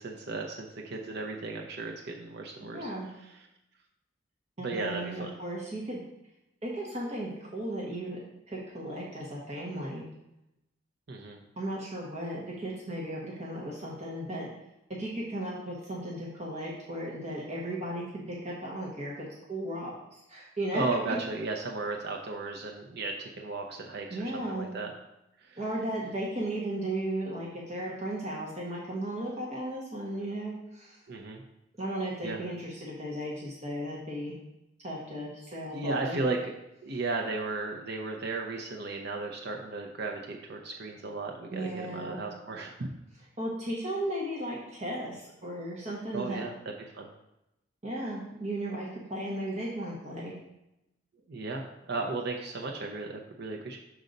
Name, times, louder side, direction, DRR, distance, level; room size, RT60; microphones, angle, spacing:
voice 1, 0.0-2.9 4.6-5.3 11.1-11.4 20.7-24.9 25.5-25.6 31.1-31.4 32.2-32.4 35.7-36.5 36.8-42.9 46.1-46.5 46.9-47.1 51.3-53.8, right 3 dB, 60° right, 1 dB, 0.6 m, -35 dB
voice 2, 2.6-3.1 4.6-6.0 6.6-8.2 8.5-10.1 11.6-14.5 14.9-20.8 21.1-21.2 24.1-24.7 25.6-31.0 31.8-34.4 34.8-36.2 36.9-37.0 41.5-42.2 43.4-46.5 47.8-50.3, right 1 dB, 35° right, -5 dB, 1.1 m, -35 dB
6.3 x 3.9 x 5.2 m, 0.88 s
head